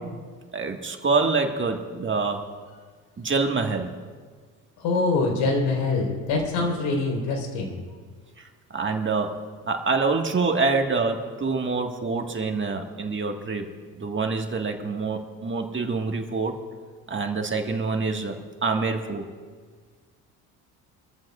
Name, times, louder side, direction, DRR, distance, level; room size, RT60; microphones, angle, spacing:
voice 1, 0.5-2.5 3.2-3.9 6.6-6.8 8.4-13.7 13.9-16.6 17.1-19.2, right 4 dB, 25° right, 3 dB, 1.8 m, -26 dB
voice 2, 4.8-7.7, left 3 dB, 70° left, 1 dB, 4.4 m, -24 dB
24.5 x 14.0 x 2.5 m, 1.5 s
hypercardioid pair, 65°, 43 cm